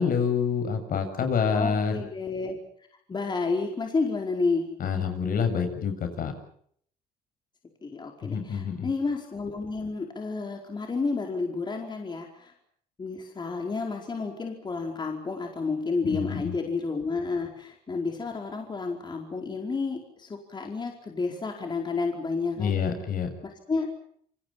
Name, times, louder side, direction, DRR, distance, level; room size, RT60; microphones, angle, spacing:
voice 1, 0.0-1.9 4.8-6.3 8.2-8.9 16.0-16.5 22.6-23.3, left 6 dB, 55° left, 7 dB, 7.5 m, -27 dB
voice 2, 1.5-2.6 3.1-4.7 7.8-12.5 13.0-22.9 23.4-23.9, left 4 dB, 25° left, 2 dB, 4.7 m, -31 dB
28.5 x 26.0 x 5.9 m, 0.64 s
cardioid pair, 110°, 17 cm